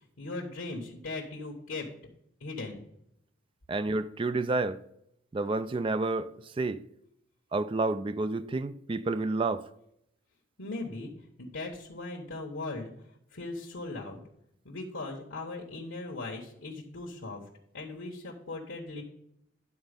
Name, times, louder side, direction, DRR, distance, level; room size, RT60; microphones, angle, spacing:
voice 1, 0.2-1.9 2.4-2.8 10.6-11.1 11.4-12.9 13.3-14.2 14.6-17.4 17.7-19.0, left 2 dB, 90° left, 1.3 m, -38 dB
voice 2, 3.7-4.8 5.3-6.8 7.5-9.7, right 3 dB, 25° right, 0.3 m, -30 dB
11.0 x 4.1 x 5.2 m
head